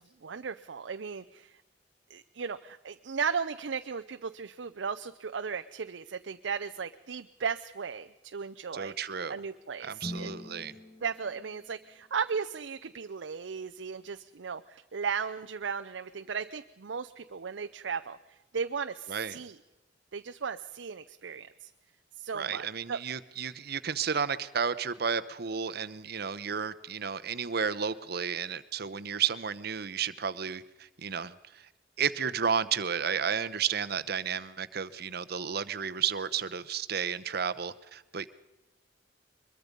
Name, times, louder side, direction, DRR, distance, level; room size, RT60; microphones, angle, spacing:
voice 1, 0.0-1.5 2.1-8.9 9.3-10.3 11.0-18.2 18.5-19.6 20.1-21.7 22.2-23.0, right 6 dB, 80° right, 9 dB, 0.6 m, -36 dB
voice 2, 8.7-9.4 9.8-10.7 19.1-19.4 22.3-31.7 32.0-38.3, right 7 dB, 60° right, 13 dB, 0.9 m, -32 dB
sound 1, 10.0-12.4, left 1 dB, 15° left, 1.6 m, -44 dB
23.0 x 22.0 x 5.3 m, 1.0 s
head